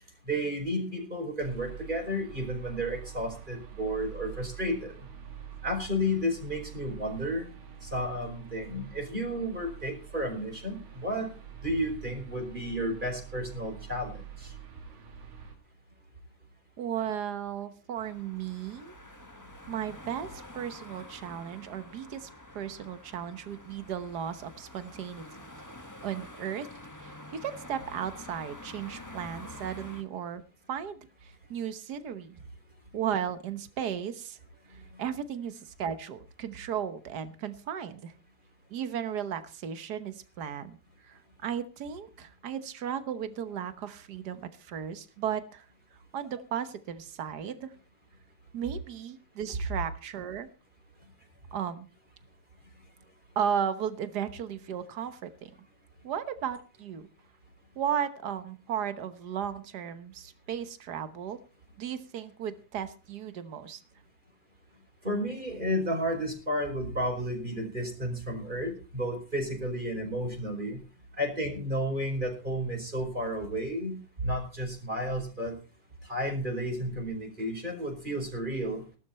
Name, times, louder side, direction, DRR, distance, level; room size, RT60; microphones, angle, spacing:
voice 1, 0.2-4.9 5.6-7.5 7.8-11.3 11.6-14.5 19.6-19.7 34.9-35.0 65.0-70.8 71.2-75.6 76.0-78.8, equal, 15° right, 3 dB, 4.7 m, -32 dB
sound 1, 1.4-15.6, right 10 dB, 55° right, 3.0 m, -46 dB
voice 2, 16.8-18.9 19.7-22.3 22.5-25.2 26.0-26.7 27.0-30.4 30.7-32.4 32.9-34.4 34.7-38.1 38.7-40.8 41.0-45.6 46.1-47.7 48.5-50.5 51.5-51.9 53.3-55.5 56.0-57.1 57.8-61.4 61.8-63.8, right 8 dB, 75° right, 11 dB, 0.9 m, -35 dB
sound 2, 18.0-30.0, left 1 dB, 15° left, 0.7 m, -47 dB
17.5 x 12.5 x 4.3 m, 0.35 s
omnidirectional pair, 3.4 m